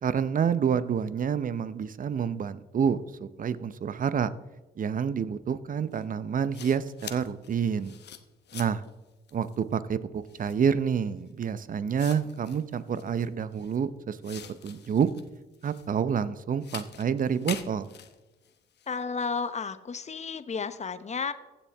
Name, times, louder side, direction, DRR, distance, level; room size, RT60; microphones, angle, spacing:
voice 1, 0.0-4.3 4.8-7.9 8.5-8.8 9.3-15.1 15.6-17.9, right 7 dB, 45° right, 15 dB, 0.7 m, -28 dB
sound 1, 5.9-6.0 6.5-8.9 9.3-9.6 10.3-10.6 11.4-11.5 12.0-13.8 14.2-15.9 16.6-19.0, left 9 dB, 60° left, 1.0 m, -45 dB
voice 2, 18.9-21.3, left 5 dB, 35° left, 13 dB, 0.9 m, -32 dB
15.5 x 7.2 x 3.5 m, 1.1 s
supercardioid pair, 65°, 20 cm